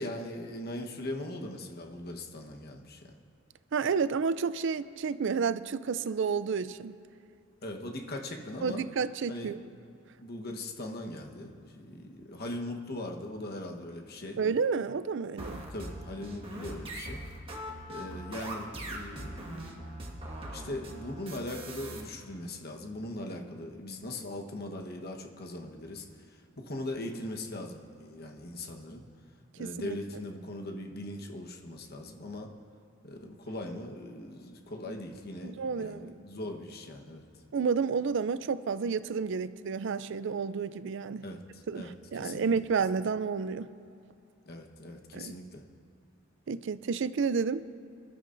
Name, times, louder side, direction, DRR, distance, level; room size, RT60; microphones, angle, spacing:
voice 1, 0.0-3.1 7.6-8.8 9.3-9.6 10.2-14.4 15.5-17.2 17.9-19.8 20.5-29.0 29.6-32.5 33.0-37.2 41.2-41.9 42.2-42.5 44.5-45.6, left 1 dB, 50° left, 2 dB, 1.2 m, -40 dB
voice 2, 3.7-7.0 8.6-9.6 14.4-15.7 29.6-30.0 35.4-36.1 37.5-41.2 41.7-43.7 45.1-45.3 46.5-47.6, right 5 dB, 65° right, 14 dB, 0.4 m, -30 dB
sound 1, 15.4-22.0, right 1 dB, 30° right, 1.6 m, -41 dB
25.0 x 12.0 x 2.6 m, 2.6 s
head